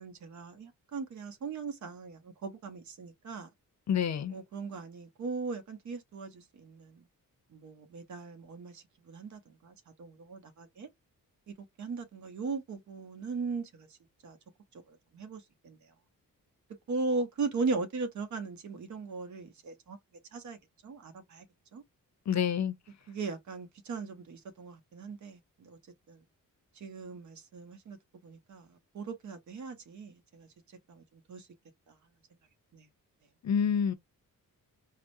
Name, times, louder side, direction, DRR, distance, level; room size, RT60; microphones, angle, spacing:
voice 1, 0.0-3.5 4.3-7.0 7.5-10.9 11.5-13.9 14.2-14.4 14.9-15.8 16.9-20.0 20.3-20.6 20.8-21.5 21.7-21.8 23.1-25.8 26.1-26.2 26.8-28.0 28.2-30.5 30.9-31.0 31.3-31.5 31.9-32.0 32.7-32.9, right 4 dB, 55° right, 0.8 m, -38 dB
voice 2, 3.9-4.3 22.3-22.7 33.4-33.9, left 8 dB, 55° left, 0.6 m, -28 dB
4.7 x 2.1 x 2.6 m
wide cardioid pair, 165°, 34 cm